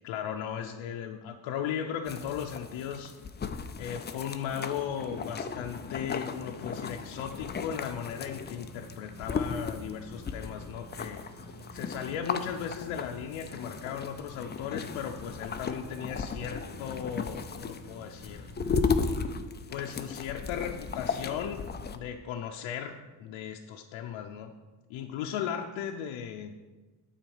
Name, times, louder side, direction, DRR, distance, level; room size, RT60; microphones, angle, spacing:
voice 1, 0.0-3.2 3.8-11.2 11.7-18.5 19.7-21.7 21.9-24.5 24.9-26.5, left 8 dB, 85° left, 2 dB, 0.7 m, -36 dB
sound 1, 2.0-22.0, left 5 dB, 25° left, 0.5 m, -36 dB
sound 2, 4.7-19.4, right 1 dB, 40° right, 2.0 m, -50 dB
9.0 x 4.4 x 7.1 m, 1.3 s
cardioid pair, 110°, 46 cm